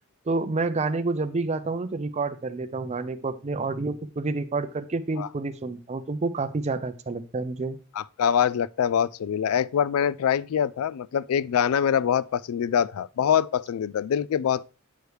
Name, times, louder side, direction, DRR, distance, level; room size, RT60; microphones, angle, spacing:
voice 1, 0.3-7.8, right 3 dB, 30° right, 0.4 m, -29 dB
voice 2, 7.9-14.7, left 8 dB, 75° left, 0.3 m, -24 dB
8.1 x 4.7 x 3.2 m
head